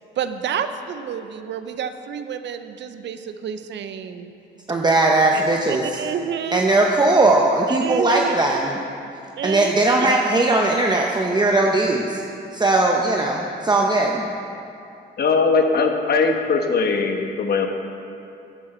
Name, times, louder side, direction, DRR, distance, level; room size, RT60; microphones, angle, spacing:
voice 1, 0.2-4.3 5.3-6.6 7.7-8.3 9.4-9.7, right 8 dB, 65° right, 10 dB, 0.8 m, -29 dB
voice 2, 4.7-6.0 6.5-8.8 9.4-12.2 12.5-14.3, right 2 dB, 20° right, 0 dB, 0.9 m, -19 dB
voice 3, 15.2-17.7, left 4 dB, 50° left, 4 dB, 1.3 m, -20 dB
13.0 x 9.7 x 4.4 m, 2.6 s
cardioid pair, 90°, 20 cm